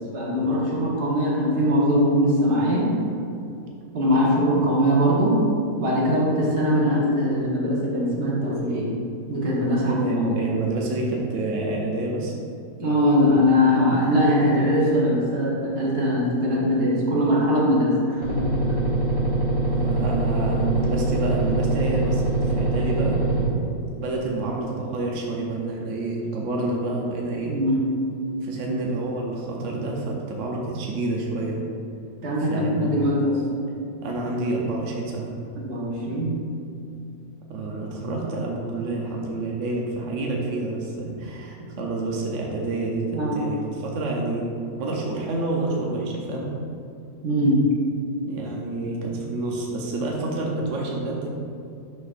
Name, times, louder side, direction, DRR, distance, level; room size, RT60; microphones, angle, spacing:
voice 1, 0.0-3.0 3.9-5.4 5.8-8.9 9.3-10.2 12.8-18.3 18.7-18.8 27.4-27.8 32.2-33.4 35.6-36.4 43.1-43.5 47.2-47.7, equal, 80° right, -5 dB, 2.0 m, -21 dB
voice 2, 9.8-12.3 19.7-23.2 23.9-27.5 28.4-31.6 32.4-32.9 34.0-35.3 37.5-44.5 44.8-46.5 48.3-51.3, right 2 dB, 55° right, -2 dB, 1.0 m, -28 dB
sound 1, 18.2-23.5, right 2 dB, 25° right, 1.2 m, -23 dB
12.0 x 4.2 x 2.5 m, 2.6 s
omnidirectional pair, 1.7 m